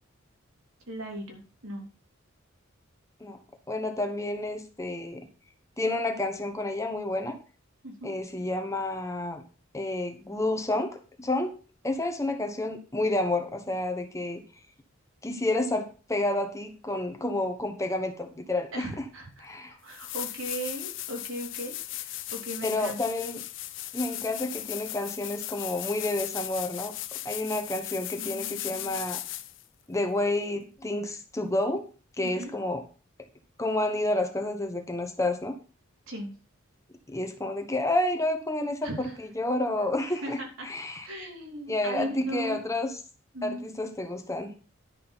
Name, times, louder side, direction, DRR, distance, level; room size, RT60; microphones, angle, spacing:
voice 1, 0.9-1.8 7.8-8.1 18.7-23.0 24.1-24.2 27.8-27.9 28.2-29.0 32.2-32.6 36.1-36.3 38.8-39.2 40.1-40.7 41.0-42.6 43.3-43.7, right 1 dB, 70° right, 0 dB, 3.6 m, -38 dB
voice 2, 3.7-5.3 5.8-7.4 8.0-9.4 9.7-10.9 11.2-11.5 11.8-14.4 15.2-19.0 19.4-19.8 22.6-23.4 23.9-26.9 27.2-29.2 29.9-31.9 32.2-32.8 33.6-35.5 37.1-40.4 40.6-41.1 41.7-42.9 43.4-44.5, left 2 dB, 15° left, 6 dB, 1.1 m, -30 dB
sound 1, 19.4-19.5 19.9-29.6 32.4-32.5, left 15 dB, 60° left, 0.7 m, -37 dB
11.0 x 6.6 x 5.7 m, 0.36 s
head